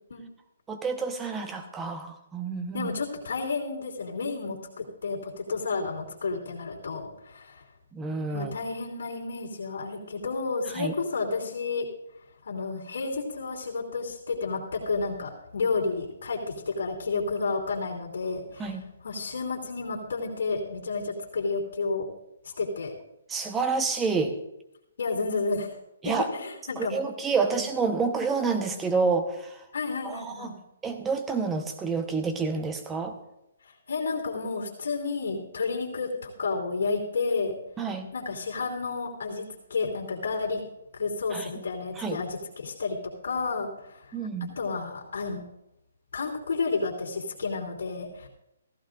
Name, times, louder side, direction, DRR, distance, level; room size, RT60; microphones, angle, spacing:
voice 1, 0.7-2.9 7.9-8.5 10.7-10.9 18.6-18.8 23.3-24.4 26.0-26.3 26.8-29.6 30.0-30.5 30.8-33.1 37.8-38.1 41.3-41.5 42.0-42.2 44.1-44.5, right 4 dB, 10° right, 6 dB, 1.1 m, -28 dB
voice 2, 2.7-7.6 8.3-11.9 12.4-22.1 22.4-22.9 25.0-25.8 26.0-27.0 27.4-27.6 29.7-30.5 33.6-37.5 38.1-40.6 40.9-43.0 43.2-44.1 44.6-45.4 46.1-48.3, left 4 dB, 75° left, 0 dB, 2.9 m, -31 dB
16.0 x 15.0 x 2.6 m, 0.87 s
hypercardioid pair, 150°, 0 cm